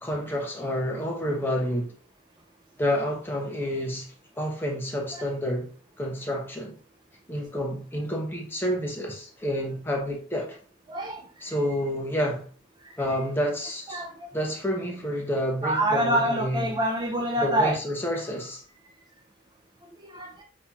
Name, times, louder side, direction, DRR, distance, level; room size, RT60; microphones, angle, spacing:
voice 1, 0.0-1.9 2.8-4.1 4.4-5.7 6.0-6.8 7.3-10.6 11.4-12.4 13.0-14.0 14.3-16.7 17.4-18.6, equal, 10° left, 0.9 m, -29 dB
voice 2, 10.9-11.2 12.8-12.9 13.9-14.3 15.6-17.8 20.0-20.4, right 1 dB, 20° right, 0.4 m, -26 dB
5.5 x 2.8 x 2.4 m
head